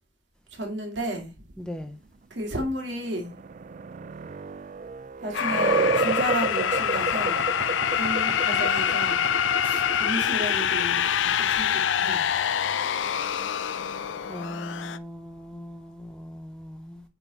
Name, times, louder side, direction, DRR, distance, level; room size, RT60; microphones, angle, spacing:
voice 1, 0.5-1.3 2.3-3.3 5.2-7.4 7.9-9.2 9.6-12.3, right 1 dB, 75° right, 2.1 m, -33 dB
voice 2, 1.6-2.0 14.3-17.0, left 1 dB, 5° left, 0.6 m, -39 dB
sound 1, 2.9-14.3, right 4 dB, 40° right, 0.3 m, -32 dB
sound 2, 5.3-15.0, left 9 dB, 90° left, 0.4 m, -25 dB
9.1 x 3.8 x 4.0 m
head